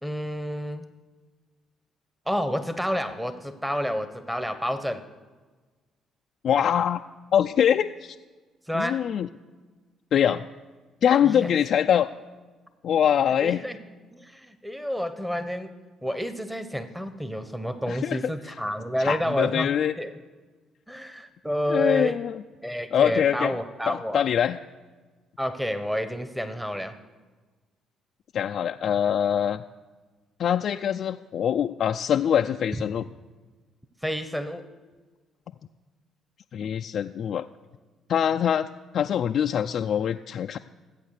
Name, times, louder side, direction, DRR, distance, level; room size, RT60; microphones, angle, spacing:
voice 1, 0.0-0.8 2.3-5.0 8.7-9.0 11.2-11.5 13.4-13.8 14.1-15.7 16.0-19.7 20.0-20.1 20.9-22.2 22.6-24.2 25.4-26.9 32.7-32.8 34.0-34.7, equal, 5° right, 10 dB, 1.2 m, -29 dB
voice 2, 6.4-7.0 7.3-8.2 8.7-9.3 10.1-10.5 11.0-12.1 12.8-13.6 17.9-18.2 19.0-19.9 21.7-22.4 22.9-23.5 23.9-24.6 28.3-29.6 30.4-33.0 36.5-37.5 38.1-38.7 38.9-40.6, left 9 dB, 60° left, 5 dB, 0.4 m, -23 dB
15.0 x 8.4 x 6.6 m, 1.3 s
hypercardioid pair, 55°, 0 cm